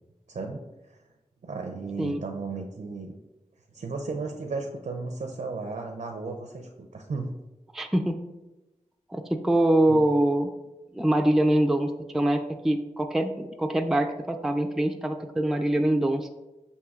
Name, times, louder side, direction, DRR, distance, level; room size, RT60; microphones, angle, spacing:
voice 1, 0.3-0.6 0.9-1.0 1.4-3.2 3.7-7.4 9.9-10.0, right 3 dB, 70° right, 3 dB, 0.4 m, -34 dB
voice 2, 7.7-8.2 9.1-10.5 10.9-16.3, right 1 dB, 5° right, 5 dB, 0.3 m, -24 dB
6.4 x 2.7 x 2.3 m, 1.0 s
cardioid pair, 40°, 13 cm